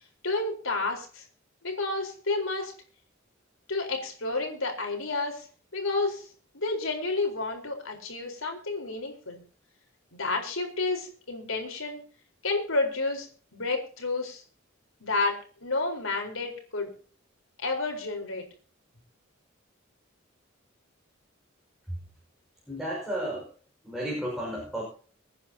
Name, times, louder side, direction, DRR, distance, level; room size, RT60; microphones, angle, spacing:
voice 1, 0.2-1.2 1.6-2.7 3.7-5.4 5.7-6.3 6.5-9.4 10.1-12.0 12.4-13.3 13.5-14.4 15.0-16.9 17.6-18.5, left 3 dB, 85° left, 3 dB, 4.5 m, -30 dB
voice 2, 22.7-23.5 23.8-24.8, right 1 dB, ahead, -3 dB, 5.6 m, -32 dB
25.5 x 9.8 x 2.9 m, 0.41 s
head